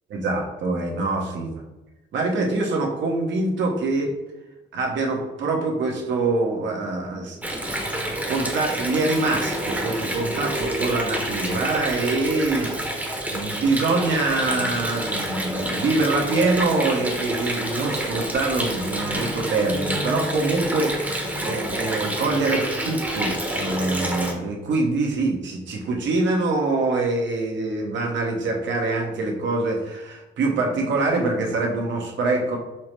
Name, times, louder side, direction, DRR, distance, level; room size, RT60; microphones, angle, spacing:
voice 1, 0.1-1.6 2.1-4.1 4.7-7.5 7.9-12.7 13.3-32.6, right 3 dB, 70° right, 1 dB, 0.9 m, -24 dB
Water, 7.4-24.3, right 1 dB, 10° right, 0.8 m, -28 dB
5.5 x 2.0 x 3.1 m, 1.0 s
cardioid pair, 90°, 20 cm